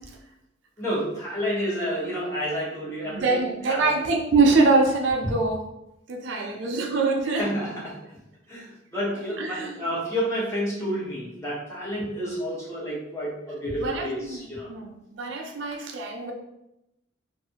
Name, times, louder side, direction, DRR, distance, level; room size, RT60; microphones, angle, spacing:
voice 1, 0.8-3.4 3.7-3.9 5.2-5.3 6.3-6.6 7.4-8.0 8.5-14.7, equal, 15° left, -8 dB, 0.9 m, -30 dB
voice 2, 3.1-5.6 6.1-7.5 9.4-9.8 11.9-12.0 13.8-14.4 14.7-16.3, right 3 dB, 70° right, 2 dB, 0.4 m, -24 dB
2.6 x 2.4 x 2.7 m, 0.86 s
head